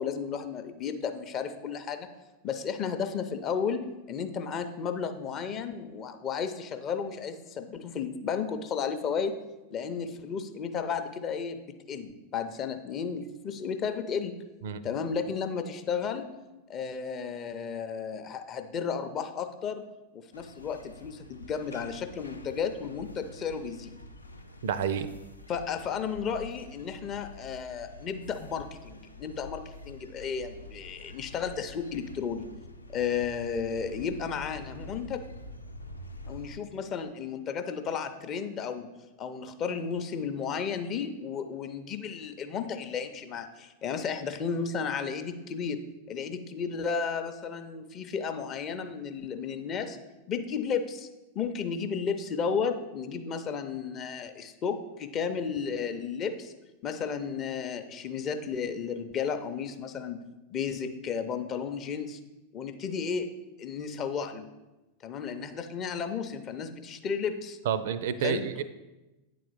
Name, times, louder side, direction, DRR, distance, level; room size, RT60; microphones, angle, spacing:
voice 1, 0.0-2.1 2.4-9.3 9.7-11.6 11.9-14.4 14.8-16.3 16.7-19.8 20.1-23.9 25.5-32.5 32.9-35.2 36.3-38.9 39.2-50.0 50.3-51.1 51.3-56.5 56.8-60.2 60.5-62.2 62.5-63.3 63.6-64.5 65.0-67.6 68.2-68.6, left 6 dB, 30° left, 8 dB, 0.6 m, -33 dB
sound 1, 20.3-36.6, left 1 dB, 85° left, 0.4 m, -47 dB
voice 2, 24.6-25.1 67.7-68.6, right 8 dB, 55° right, 14 dB, 0.4 m, -29 dB
9.0 x 3.9 x 4.8 m, 1.1 s
figure-of-eight pair, 90°, 0 cm